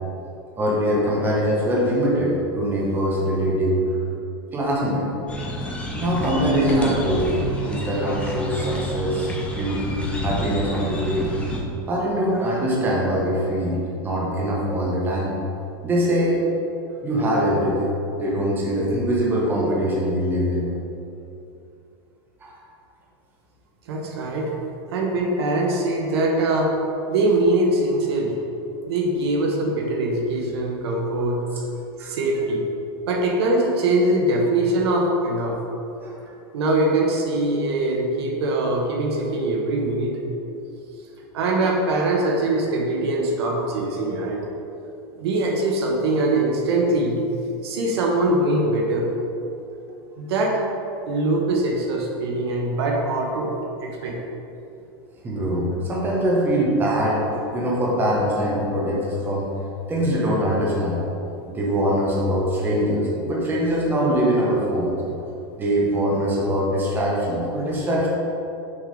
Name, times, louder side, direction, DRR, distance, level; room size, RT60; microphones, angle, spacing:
voice 1, 0.6-3.9 4.5-5.1 5.9-11.3 11.9-15.4 15.8-16.4 17.0-17.9 18.2-20.7 22.4-22.5 32.0-32.1 36.0-36.1 43.4-43.6 55.2-59.5 59.9-61.0 61.5-65.0 65.5-68.1, equal, 15° right, -4 dB, 1.0 m, -23 dB
sound 1, 5.3-11.6, equal, 10° left, 0.6 m, -29 dB
voice 2, 23.9-24.5 24.9-26.8 27.1-28.4 28.9-31.5 32.0-32.7 33.1-35.6 36.5-40.2 41.3-44.5 45.2-47.2 47.6-49.1 50.2-50.6 51.1-53.5 53.8-54.2, right 2 dB, 80° right, 0 dB, 1.2 m, -22 dB
6.3 x 3.9 x 5.1 m, 2.8 s
supercardioid pair, 160°, 13 cm